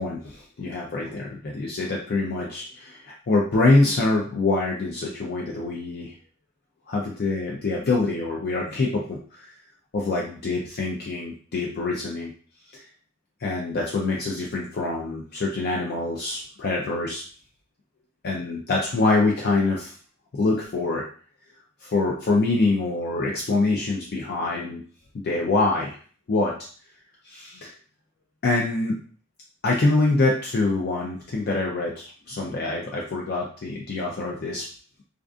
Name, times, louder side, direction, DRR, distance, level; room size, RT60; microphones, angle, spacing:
voice 1, 0.0-6.1 6.9-9.5 9.9-12.3 13.4-17.2 18.2-19.9 20.3-21.0 21.8-24.8 25.2-25.9 26.3-26.5 27.2-27.7 28.4-29.0 29.6-34.6, left 3 dB, 45° left, -2 dB, 0.4 m, -25 dB
2.4 x 2.4 x 2.4 m, 0.42 s
head